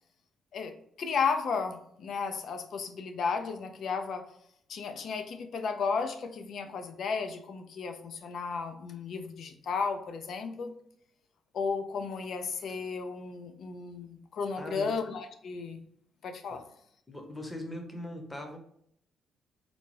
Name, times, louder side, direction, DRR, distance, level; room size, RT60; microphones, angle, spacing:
voice 1, 1.0-4.3 4.7-10.7 11.5-15.8 16.2-16.6, left 5 dB, 65° left, 7 dB, 0.5 m, -34 dB
voice 2, 14.6-14.9 16.5-16.6 17.1-18.6, left 1 dB, 15° left, 4 dB, 0.8 m, -40 dB
3.8 x 2.2 x 3.2 m, 0.68 s
cardioid pair, 90°, 0 cm